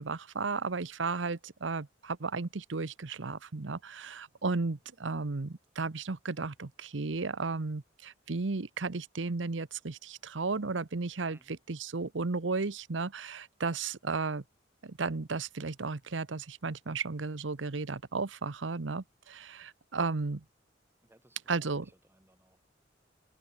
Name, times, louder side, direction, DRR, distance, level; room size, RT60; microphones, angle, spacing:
voice 1, 0.0-14.4 14.8-20.4 21.5-21.9, right 4 dB, 80° right, 0.9 m, -34 dB
voice 2, 21.0-22.7, right 1 dB, 15° right, 2.9 m, -63 dB
open air
head